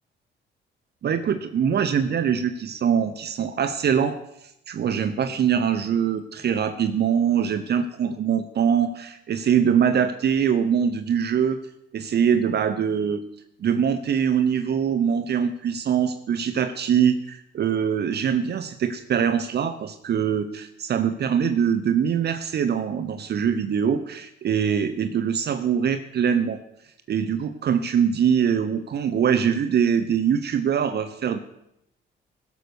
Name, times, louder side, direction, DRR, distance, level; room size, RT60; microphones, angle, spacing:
voice 1, 1.0-4.2 4.7-11.6 11.9-13.2 13.6-26.6 27.1-31.4, right 8 dB, 55° right, 9 dB, 0.9 m, -23 dB
16.5 x 7.1 x 6.3 m, 0.79 s
cardioid pair, 90°, 20 cm